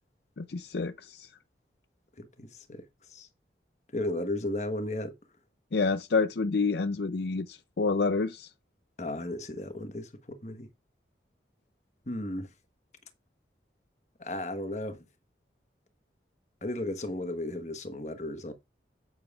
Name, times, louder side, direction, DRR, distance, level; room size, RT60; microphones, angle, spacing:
voice 1, 0.4-1.3 5.7-8.5, left 4 dB, 70° left, 0.6 m, -28 dB
voice 2, 2.2-3.3 3.9-5.1 9.0-10.7 12.1-12.5 14.2-15.0 16.6-18.5, left 1 dB, 40° left, 1.2 m, -35 dB
9.2 x 8.7 x 2.4 m
head